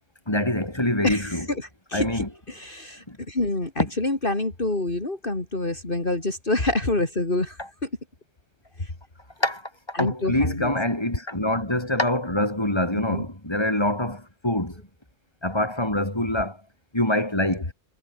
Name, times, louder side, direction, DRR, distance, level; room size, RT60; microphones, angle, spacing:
voice 1, 0.3-1.5 1.9-2.3 3.1-3.2 7.6-7.7 9.4-9.7 10.0-14.8 15.4-16.6 16.9-17.7, left 1 dB, 20° left, 5.2 m, -25 dB
voice 2, 1.0-7.9 8.8-8.9 9.9-10.7 13.1-13.2, left 2 dB, 45° left, 3.9 m, -27 dB
omnidirectional pair, 1.3 m